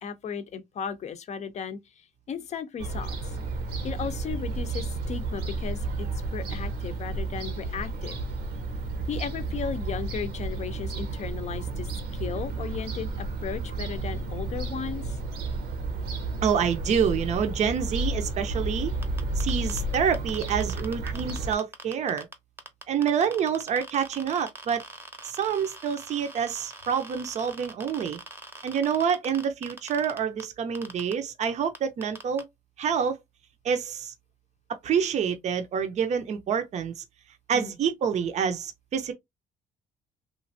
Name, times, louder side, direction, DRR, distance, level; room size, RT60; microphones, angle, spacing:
voice 1, 0.0-3.2 3.8-6.1 6.3-8.2 9.1-15.2 37.5-37.7, left 6 dB, 40° left, 0.6 m, -35 dB
Fowl / Gull seagull, 2.8-21.5, right 2 dB, 85° right, 0.9 m, -32 dB
voice 2, 16.4-18.9 19.4-22.3 22.9-24.8 25.2-28.2 28.6-32.4 32.8-33.2 33.6-34.1 34.8-37.0 37.5-39.1, right 7 dB, 45° right, 0.5 m, -27 dB
sound 1, 19.0-22.3 22.6-30.4 30.7-31.1 31.4-31.5 31.7-32.4, right 2 dB, 15° right, 0.7 m, -42 dB
3.1 x 2.5 x 2.5 m
cardioid pair, 110°, 17 cm